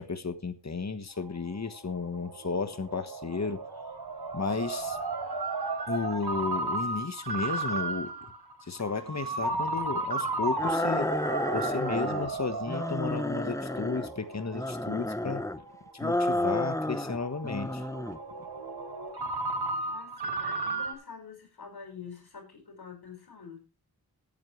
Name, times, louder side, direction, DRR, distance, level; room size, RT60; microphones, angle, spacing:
voice 1, 0.0-3.6 4.3-5.0 5.9-8.1 8.7-11.1 11.4-15.4 16.0-17.8, left 4 dB, 45° left, 1.4 m, -33 dB
Ringtone, 1.2-20.9, right 3 dB, 85° right, 4.1 m, -35 dB
sound 1, 10.6-12.3 12.7-14.1 14.5-15.6 16.0-17.2 17.4-18.2, left 1 dB, 10° left, 0.8 m, -31 dB
voice 2, 19.8-23.6, left 6 dB, 80° left, 5.8 m, -46 dB
17.5 x 9.6 x 3.3 m
wide cardioid pair, 75°, 38 cm